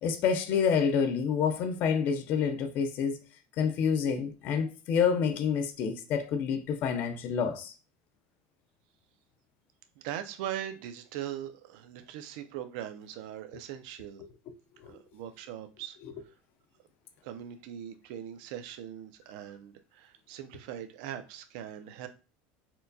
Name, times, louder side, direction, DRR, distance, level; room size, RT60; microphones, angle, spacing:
voice 1, 0.0-3.2 3.6-7.7 14.8-15.0, left 6 dB, 40° left, 0.5 m, -28 dB
voice 2, 10.0-14.2 14.8-16.3 17.2-22.1, right 11 dB, 65° right, 0.4 m, -41 dB
4.3 x 2.2 x 2.6 m
cardioid pair, 170°, 5 cm